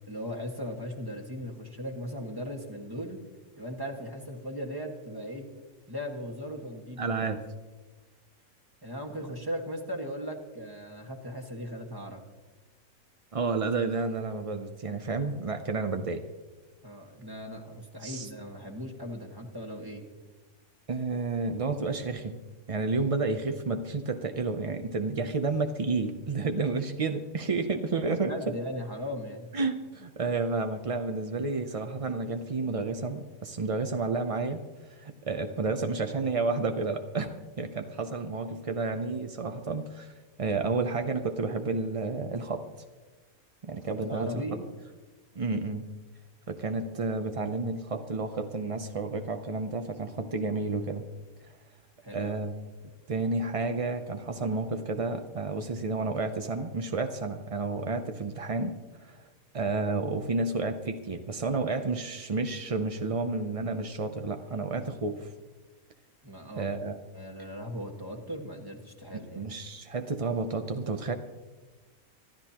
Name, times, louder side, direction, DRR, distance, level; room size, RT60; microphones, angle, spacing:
voice 1, 0.1-3.2 3.6-5.5 5.9-7.3 8.8-12.2 16.8-20.1 28.1-29.5 43.9-44.6 52.0-52.5 66.2-66.8 67.1-69.5, equal, 15° right, 2 dB, 1.6 m, -38 dB
voice 2, 7.0-7.4 13.3-16.2 18.0-18.3 20.9-22.4 22.7-28.5 29.5-42.7 43.6-44.4 45.4-45.9 46.5-51.0 52.1-52.5 53.1-58.7 59.0-59.2 59.5-65.3 66.6-67.0 69.4-71.2, right 3 dB, 50° right, 7 dB, 0.4 m, -31 dB
25.5 x 12.5 x 2.9 m, 1.3 s
omnidirectional pair, 1.5 m